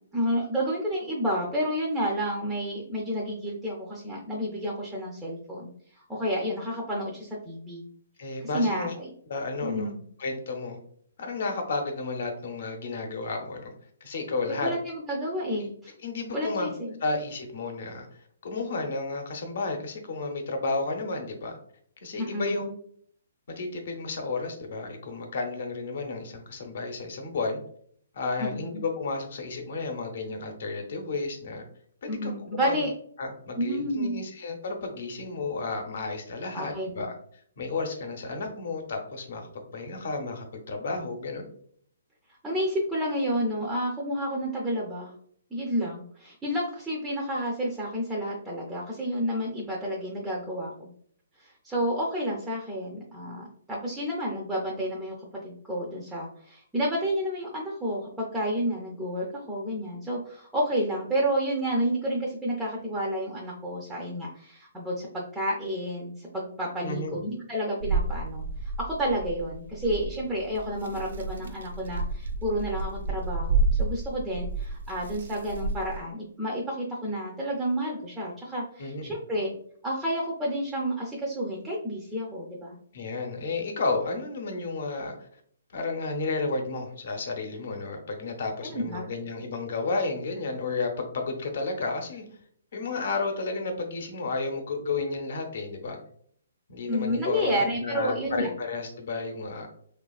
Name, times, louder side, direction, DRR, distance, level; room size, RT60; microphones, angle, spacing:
voice 1, 0.1-5.7 6.0-7.8 8.5-9.1 9.6-10.0 14.5-15.9 16.3-17.0 22.2-22.7 28.4-28.8 32.1-32.9 33.6-34.2 36.5-37.1 42.4-45.1 45.5-50.9 51.4-55.1 55.4-79.5 79.8-82.8 88.7-89.1 96.9-98.5, equal, 5° right, -4 dB, 0.4 m, -30 dB
voice 2, 8.2-8.9 9.3-9.9 10.2-10.8 11.2-13.7 14.0-14.7 15.6-15.7 16.0-16.7 17.0-18.1 18.4-21.6 22.0-22.7 23.5-27.6 28.1-31.6 32.0-32.3 32.6-32.8 33.2-37.2 37.6-39.5 39.7-41.5 66.8-67.2 78.8-79.1 82.9-85.1 85.7-92.2 92.7-96.0 96.7-99.7, left 3 dB, 60° left, 4 dB, 0.6 m, -32 dB
sound 1, 67.8-76.0, right 3 dB, 75° right, 0.3 m, -31 dB
2.9 x 2.3 x 2.3 m, 0.62 s
hypercardioid pair, 150°, 0 cm